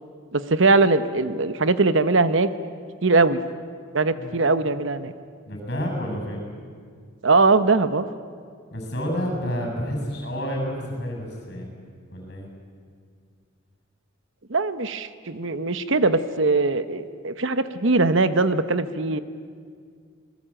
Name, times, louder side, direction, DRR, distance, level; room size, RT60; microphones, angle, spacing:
voice 1, 0.3-2.5 3.0-3.4 3.9-5.1 7.2-8.0 14.5-19.2, right 3 dB, 65° right, 12 dB, 1.0 m, -21 dB
voice 2, 5.5-6.4 8.7-11.7 12.1-12.5, equal, 50° left, 2 dB, 7.8 m, -29 dB
26.5 x 20.0 x 8.9 m, 2.1 s
head